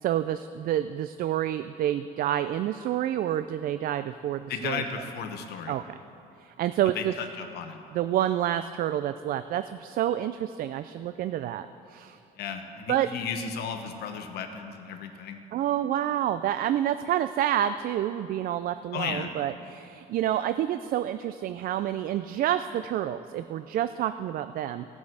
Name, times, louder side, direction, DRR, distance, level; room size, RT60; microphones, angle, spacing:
voice 1, 0.0-4.8 5.7-5.8 6.4-7.1 7.9-12.2 12.9-13.1 15.5-24.9, right 11 dB, 60° right, 12 dB, 0.4 m, -28 dB
voice 2, 4.5-5.8 6.9-7.8 12.4-15.4 18.9-19.3, left 6 dB, 70° left, 5 dB, 1.3 m, -34 dB
15.5 x 6.2 x 7.8 m, 2.7 s
cardioid pair, 110°, 17 cm